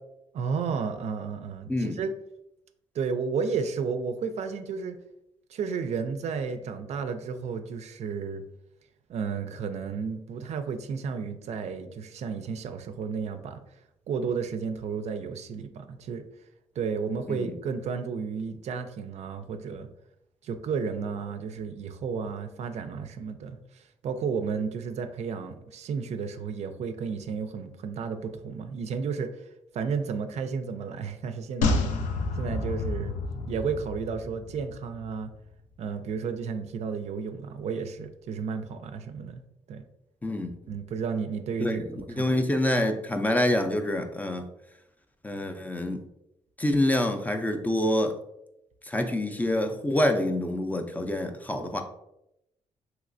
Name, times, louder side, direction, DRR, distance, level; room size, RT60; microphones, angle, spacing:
voice 1, 0.3-2.1 2.9-5.0 5.5-8.4 9.1-13.6 14.1-16.2 16.8-19.9 20.4-29.4 29.7-31.8 32.4-33.2 33.5-35.3 35.8-39.4 39.7-39.9 40.7-42.4, right 5 dB, 60° right, 8 dB, 0.4 m, -32 dB
sound 1, 31.6-35.1 35.3-35.4, left 3 dB, 90° left, 0.4 m, -29 dB
voice 2, 42.2-44.5 45.2-46.0 46.6-48.1 48.9-51.8, left 1 dB, 15° left, 5 dB, 0.4 m, -26 dB
3.1 x 2.9 x 2.5 m, 0.82 s
cardioid pair, 85°, 13 cm